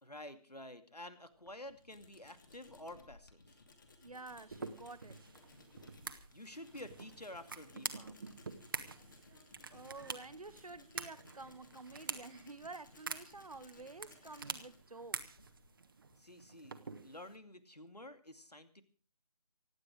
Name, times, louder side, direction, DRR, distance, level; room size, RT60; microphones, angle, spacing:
voice 1, 0.0-3.6 6.3-8.2 16.2-18.8, left 1 dB, 85° left, 2.5 m, -50 dB
Tools, 1.2-16.6, left 3 dB, 30° left, 2.5 m, -61 dB
voice 2, 4.0-5.2 9.7-15.4, right 3 dB, 65° right, 1.0 m, -50 dB
sound 1, 4.5-17.4, right 4 dB, 35° right, 1.4 m, -47 dB
24.5 x 9.4 x 5.0 m
figure-of-eight pair, 160°, 20 cm